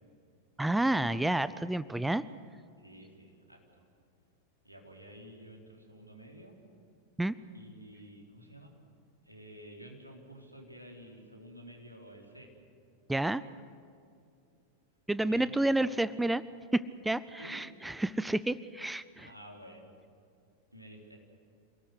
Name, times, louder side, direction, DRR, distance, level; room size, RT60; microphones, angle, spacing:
voice 1, 0.6-2.2 7.2-7.3 13.1-13.4 15.1-16.4 16.7-19.3, right 1 dB, 5° right, 16 dB, 0.6 m, -30 dB
voice 2, 2.8-3.6 4.6-6.6 7.5-8.8 9.2-12.5 15.2-15.9 17.4-17.6 19.2-20.0 20.7-21.2, right 1 dB, 90° right, 0 dB, 3.9 m, -51 dB
27.0 x 18.5 x 8.1 m, 2.5 s
figure-of-eight pair, 90°, 0 cm